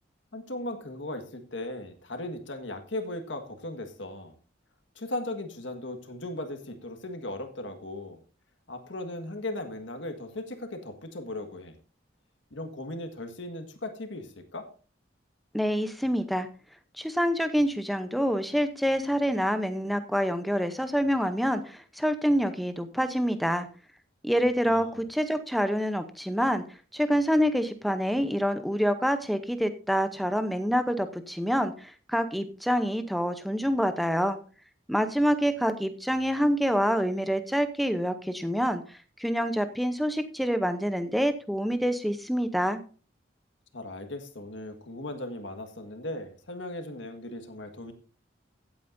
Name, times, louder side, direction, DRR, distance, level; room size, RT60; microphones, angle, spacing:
voice 1, 0.3-4.3 4.9-8.2 8.7-11.8 12.5-14.7 24.6-25.0 43.7-47.9, left 1 dB, 80° left, 6 dB, 1.7 m, -37 dB
voice 2, 15.5-16.5 17.0-23.7 24.2-26.6 26.9-34.4 34.9-42.8, equal, ahead, 9 dB, 0.7 m, -27 dB
16.0 x 8.7 x 2.6 m, 0.38 s
head